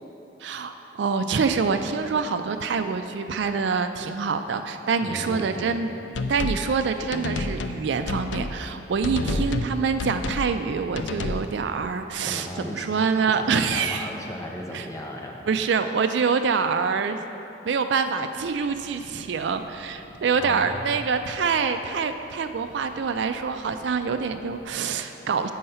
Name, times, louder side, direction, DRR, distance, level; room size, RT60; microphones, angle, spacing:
voice 1, 0.4-5.9 6.3-14.1 14.7-14.9 15.5-17.2 17.6-25.5, right 5 dB, 70° right, 8 dB, 0.4 m, -26 dB
voice 2, 5.0-5.8 9.2-9.6 12.2-12.9 13.3-15.4 20.3-21.0, left 1 dB, 15° left, 0 dB, 0.7 m, -36 dB
sound 1, 6.1-6.6 7.1-7.8 8.1-8.5 9.0-9.7 10.0-10.5 10.9-11.5, left 3 dB, 70° left, 0.4 m, -29 dB
sound 2, 18.4-24.6, equal, 45° left, 2.0 m, -53 dB
7.9 x 5.5 x 5.6 m, 2.9 s
head